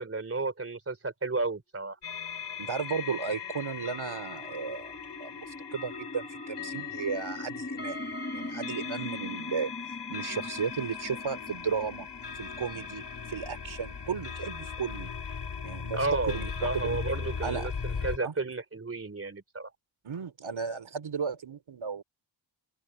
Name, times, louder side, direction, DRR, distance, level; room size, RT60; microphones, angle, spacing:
voice 1, 0.0-2.0 15.9-19.7, right 3 dB, 30° right, 3.5 m, -32 dB
sound 1, 2.0-18.2, left 6 dB, 60° left, 3.3 m, -38 dB
sound 2, 2.6-14.7, left 2 dB, 20° left, 7.4 m, -43 dB
voice 2, 2.6-4.9 5.2-9.7 10.1-12.1 12.4-13.0 13.3-15.1 15.6-16.0 16.2-17.0 17.4-17.7 18.2-18.3 20.0-22.0, right 6 dB, 80° right, 3.6 m, -34 dB
open air
wide cardioid pair, 130°, 47 cm